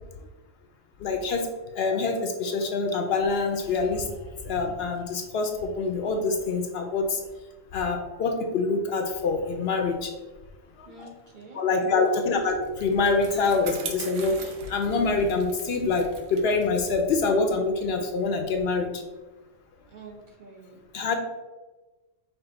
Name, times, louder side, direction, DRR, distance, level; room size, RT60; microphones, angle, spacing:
voice 1, 1.0-1.5 1.7-4.1 4.4-7.2 7.7-10.1 10.8-11.1 11.5-14.4 14.7-18.9 20.9-21.1, left 4 dB, 65° left, 4 dB, 0.7 m, -25 dB
voice 2, 10.8-12.2 19.9-20.8, right 3 dB, 50° right, -1 dB, 0.8 m, -47 dB
Bicycle, 12.0-18.8, right 3 dB, 85° right, 1.1 m, -41 dB
5.6 x 2.5 x 3.7 m, 1.2 s
omnidirectional pair, 1.2 m